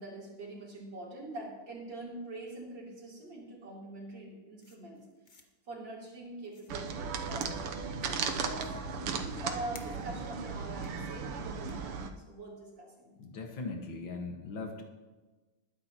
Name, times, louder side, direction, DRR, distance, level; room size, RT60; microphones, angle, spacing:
voice 1, 0.0-5.1 5.7-13.1, right 2 dB, 55° right, -4 dB, 3.9 m, -44 dB
sound 1, 4.6-5.5 6.4-6.9 7.4-7.5 8.2-8.3 9.0-10.2 10.8-10.9 11.7-11.8, left 3 dB, 45° left, 0.6 m, -55 dB
sound 2, 6.7-12.1, right 5 dB, 90° right, 1.8 m, -36 dB
voice 2, 13.2-14.8, left 3 dB, 65° left, 2 dB, 2.2 m, -39 dB
20.5 x 10.0 x 3.0 m, 1.2 s
omnidirectional pair, 2.3 m